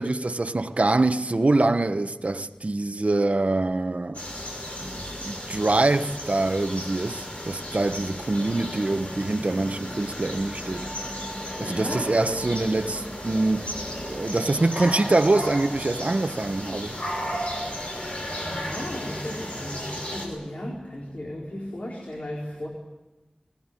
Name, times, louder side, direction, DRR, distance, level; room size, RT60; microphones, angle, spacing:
voice 1, 0.0-4.2 4.8-4.9 5.2-10.9 11.6-13.6 14.0-16.9, right 2 dB, 65° right, 1.1 m, -24 dB
sound 1, 4.1-20.3, equal, 60° left, 6.2 m, -34 dB
voice 2, 11.5-12.4 18.4-22.7, left 1 dB, 80° left, 4.4 m, -35 dB
20.5 x 19.5 x 9.9 m
wide cardioid pair, 50°, 2 cm